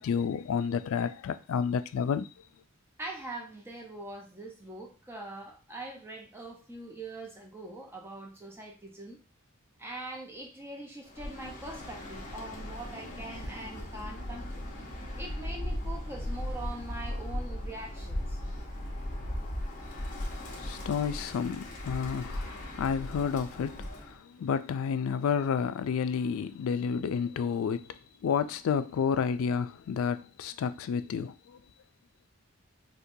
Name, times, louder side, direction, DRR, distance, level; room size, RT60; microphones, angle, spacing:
voice 1, 0.0-2.3 20.6-23.8 24.4-27.8 28.2-31.3, left 6 dB, 70° left, 0.3 m, -30 dB
voice 2, 3.0-9.2 9.8-14.7 15.2-18.4, right 2 dB, 10° right, 0.6 m, -43 dB
Bird, 11.1-24.2, left 1 dB, 35° left, 0.8 m, -38 dB
4.3 x 2.2 x 2.6 m
head